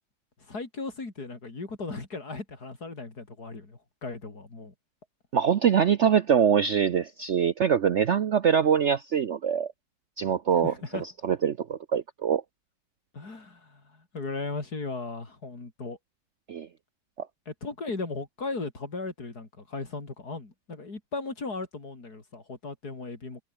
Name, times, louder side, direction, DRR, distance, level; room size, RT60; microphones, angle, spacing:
voice 1, 0.5-4.7 10.5-11.0 13.1-16.0 17.5-23.4, left 3 dB, 60° left, 4.5 m, -37 dB
voice 2, 5.3-9.7 10.2-10.7 11.2-12.4 16.5-16.7, right 8 dB, 55° right, 0.8 m, -23 dB
omnidirectional pair, 1.9 m